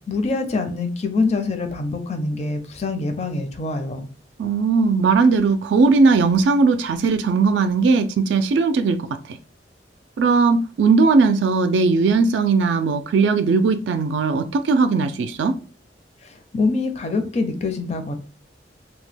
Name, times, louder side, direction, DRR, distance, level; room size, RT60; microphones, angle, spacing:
voice 1, 0.1-4.1 16.2-18.2, left 3 dB, 40° left, 0.5 m, -25 dB
voice 2, 4.4-9.0 9.3-9.4 10.2-15.5, right 4 dB, 80° right, 0.3 m, -18 dB
2.8 x 2.2 x 3.3 m
head